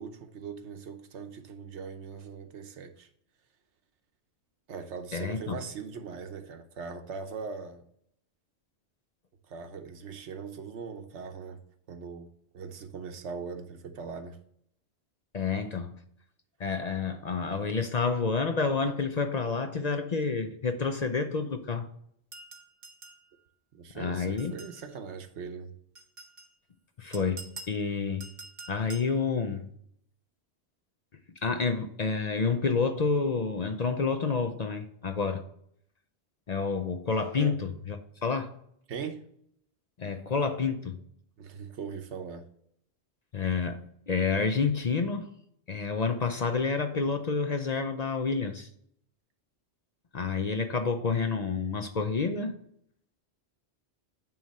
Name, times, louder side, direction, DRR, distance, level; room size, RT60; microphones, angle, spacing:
voice 1, 0.0-3.1 4.7-7.8 9.5-11.6 11.9-12.3 12.5-14.4 23.7-25.7 37.4-37.6 38.9-39.2 41.4-42.4, right 5 dB, 85° right, 1.1 m, -40 dB
voice 2, 5.1-5.6 15.3-15.9 16.6-21.9 23.9-24.5 27.0-28.3 28.7-29.7 31.4-35.4 36.5-38.0 38.2-38.5 40.0-41.0 43.3-45.3 45.7-48.7 50.1-52.5, left 5 dB, 45° left, 0.6 m, -29 dB
sound 1, 22.3-23.3 24.4-24.9 26.0-26.5 27.1-27.8 28.2-29.1, right 3 dB, 45° right, 1.0 m, -46 dB
9.3 x 3.1 x 5.4 m
omnidirectional pair, 1.1 m